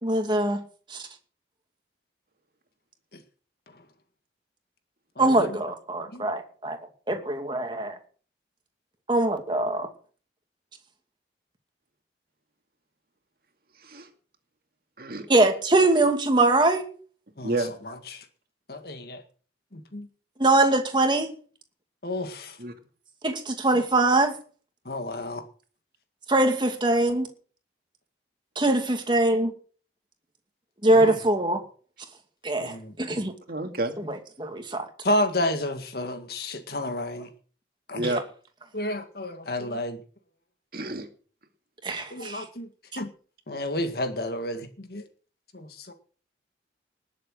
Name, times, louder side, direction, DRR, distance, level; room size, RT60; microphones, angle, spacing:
voice 1, 0.0-0.6 0.9-1.1 5.2-6.8 7.1-8.0 9.1-9.9 15.3-16.9 20.4-21.3 23.2-24.3 26.3-27.3 28.6-29.5 30.8-31.6 32.4-33.3 34.0-34.9 41.8-42.4, right 2 dB, 25° right, 2.5 m, -23 dB
voice 2, 5.2-5.6 6.1-6.2 17.4-17.5 17.8-18.3 18.7-19.2 19.7-20.1 22.0-22.6 24.9-25.5 30.9-31.2 32.6-33.0 35.0-37.3 37.9-38.2 38.7-40.0 42.1-42.7 43.0-43.1 43.5-45.1 45.5-45.9, left 1 dB, 55° left, 1.9 m, -31 dB
voice 3, 33.5-33.9 37.9-38.2 40.7-41.1, right 2 dB, 55° right, 2.4 m, -29 dB
19.5 x 7.7 x 6.5 m
head